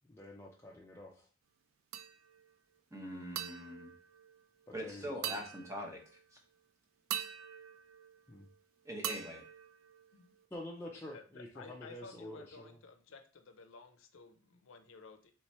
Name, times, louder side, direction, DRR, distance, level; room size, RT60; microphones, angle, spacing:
voice 1, 0.1-1.3 4.7-5.4 8.3-8.5 10.5-12.8, left 1 dB, 10° left, -3 dB, 0.4 m, -48 dB
sound 1, 1.9-2.5 3.4-4.8 5.2-6.3 7.1-8.6 9.0-10.5, right 9 dB, 80° right, 0.4 m, -44 dB
voice 2, 2.9-3.9 4.7-6.0 8.8-9.4, equal, 15° right, 1 dB, 0.7 m, -42 dB
voice 3, 11.1-15.3, left 4 dB, 70° left, 7 dB, 0.5 m, -54 dB
3.4 x 3.1 x 4.1 m, 0.41 s
head